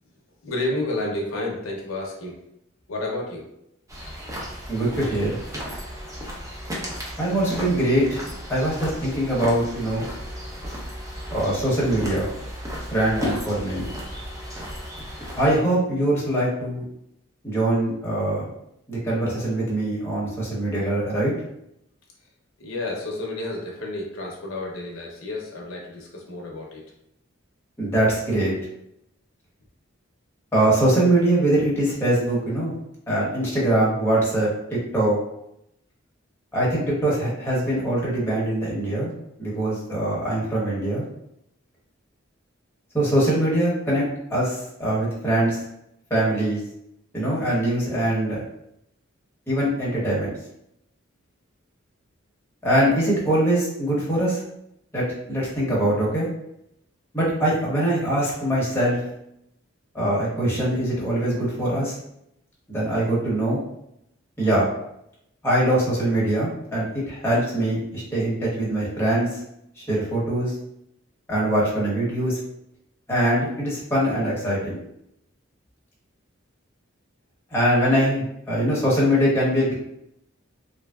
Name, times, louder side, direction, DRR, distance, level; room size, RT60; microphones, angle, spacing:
voice 1, 0.4-2.4 2.9-3.4 22.6-26.8, left 2 dB, 75° left, -1 dB, 0.6 m, -30 dB
sound 1, 3.9-15.6, equal, 15° right, 0.6 m, -34 dB
voice 2, 4.7-5.4 7.2-8.2 8.5-10.1 11.3-12.3 12.9-13.9 15.4-16.8 17.4-18.5 18.9-21.3 27.8-28.5 30.5-32.7 33.1-34.5 34.9-35.2 36.5-39.1 39.4-41.0 42.9-45.6 46.1-46.6 47.1-48.4 49.5-50.3 52.6-54.4 54.9-56.3 57.1-59.0 59.9-61.9 62.7-63.6 64.4-64.7 65.4-69.4 69.8-70.5 71.3-72.4 73.1-74.7 77.5-79.7, right 1 dB, 10° left, -6 dB, 0.9 m, -22 dB
3.2 x 2.6 x 2.2 m, 0.79 s
head